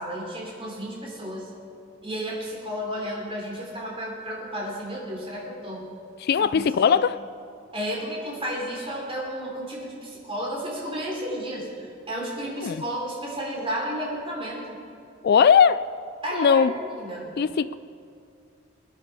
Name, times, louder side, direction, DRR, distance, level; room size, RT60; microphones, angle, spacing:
voice 1, 0.0-1.5 2.0-5.9 6.4-7.0 7.7-14.8 16.2-17.3, equal, 25° right, 3.5 m, -32 dB
voice 2, 6.2-7.2 12.6-12.8 15.2-15.9 16.3-16.7 17.4-17.8, left 7 dB, 50° left, 0.3 m, -19 dB
21.5 x 10.5 x 4.8 m
head